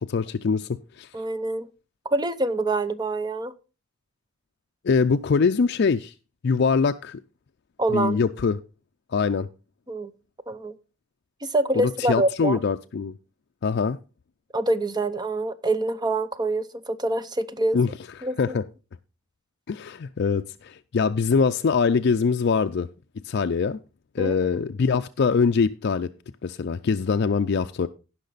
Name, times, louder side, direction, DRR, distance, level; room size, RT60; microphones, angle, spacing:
voice 1, 0.1-0.7 1.0-1.1 4.8-6.1 6.4-7.2 7.9-8.6 9.1-9.5 11.8-13.1 13.6-14.0 17.7-17.9 18.4-18.7 19.7-22.9 23.3-23.8 24.1-26.1 26.4-27.9, left 5 dB, 60° left, 0.4 m, -23 dB
voice 2, 1.1-1.7 2.0-3.5 7.8-8.2 9.9-10.1 10.5-10.8 11.4-12.6 14.5-17.8 18.2-18.6 24.2-24.6, right 2 dB, 20° right, 0.7 m, -26 dB
17.0 x 5.9 x 3.9 m
head